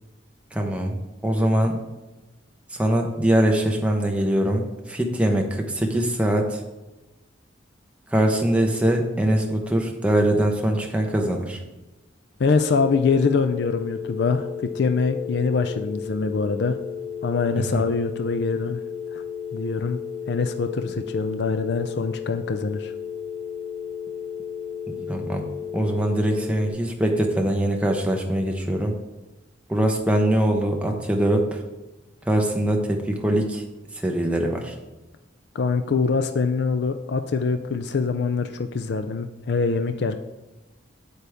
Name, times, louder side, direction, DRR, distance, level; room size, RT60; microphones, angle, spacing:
voice 1, 0.5-1.0 1.2-1.8 2.8-6.6 8.1-11.6 17.6-17.8 24.9-25.4 25.7-28.9 29.7-31.6 32.3-33.6 34.0-34.7, right 1 dB, 5° right, 1 dB, 0.9 m, -22 dB
voice 2, 12.4-16.8 17.2-18.8 19.1-19.2 19.5-20.0 20.3-22.9 35.5-40.1, left 4 dB, 55° left, 8 dB, 0.4 m, -24 dB
sound 1, 12.5-26.7, left 7 dB, 15° left, 3.1 m, -34 dB
8.2 x 7.9 x 3.5 m, 1.1 s
head